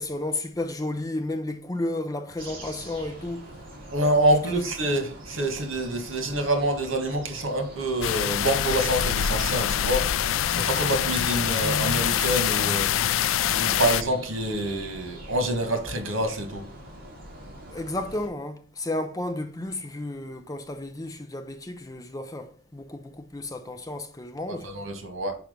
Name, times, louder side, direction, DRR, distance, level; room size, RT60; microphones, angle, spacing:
voice 1, 0.0-3.4 4.5-4.6 17.7-24.7, left 2 dB, 20° left, 0.6 m, -32 dB
sound 1, 2.4-18.3, right 1 dB, 45° right, 2.4 m, -44 dB
voice 2, 3.9-10.0 10.5-16.6 24.5-25.3, right 1 dB, 80° right, 1.6 m, -26 dB
sound 2, 8.0-14.0, left 10 dB, 80° left, 0.4 m, -25 dB
6.0 x 4.8 x 5.0 m
head